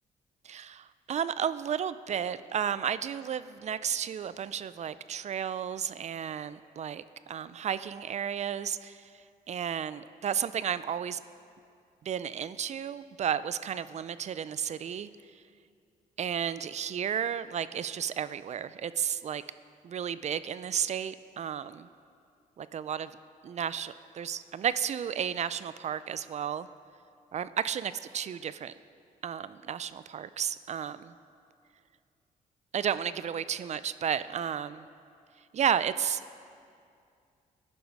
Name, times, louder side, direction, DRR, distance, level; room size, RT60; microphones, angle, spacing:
voice 1, 0.4-9.1 9.5-11.2 12.0-15.1 16.2-19.4 19.8-21.9 22.6-23.1 23.4-26.7 27.3-28.7 29.2-31.1 32.7-34.9 35.5-36.2, right 8 dB, 50° right, 15 dB, 0.4 m, -33 dB
15.0 x 10.5 x 4.7 m, 2.4 s
cardioid pair, 90°, 15 cm